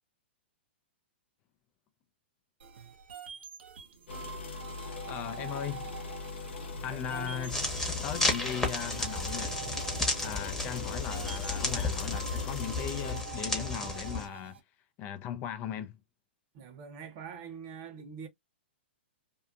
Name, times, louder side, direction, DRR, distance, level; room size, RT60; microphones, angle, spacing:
sound 1, 2.6-14.6, right 8 dB, 75° right, 0.8 m, -47 dB
sound 2, 4.1-13.2, left 3 dB, 70° left, 0.9 m, -40 dB
voice 1, 5.1-5.9 6.8-9.6 10.2-14.5 15.0-16.0, left 10 dB, 30° left, 0.4 m, -38 dB
voice 2, 6.8-7.6 16.5-18.3, right 6 dB, 40° right, 0.9 m, -44 dB
sound 3, 7.5-14.3, left 2 dB, 10° left, 1.0 m, -33 dB
2.7 x 2.4 x 2.3 m
hypercardioid pair, 125°, 6 cm